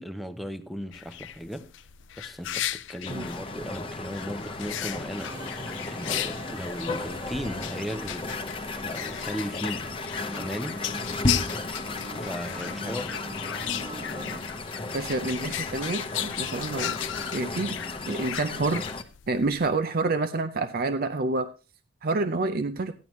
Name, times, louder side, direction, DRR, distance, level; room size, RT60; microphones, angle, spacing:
voice 1, 0.0-1.7 2.2-5.3 5.9-8.3 8.8-9.9 10.4-10.8 12.2-13.2, equal, ahead, 0.7 m, -36 dB
sound 1, 0.9-19.7, left 12 dB, 75° left, 0.5 m, -36 dB
sound 2, 3.1-19.0, left 2 dB, 30° left, 0.8 m, -34 dB
sound 3, 5.2-14.4, right 1 dB, 20° right, 1.2 m, -43 dB
voice 2, 14.9-17.0 17.3-17.8 18.1-18.8 19.3-21.5 22.0-22.9, right 3 dB, 50° right, 0.6 m, -28 dB
14.5 x 10.5 x 3.1 m
head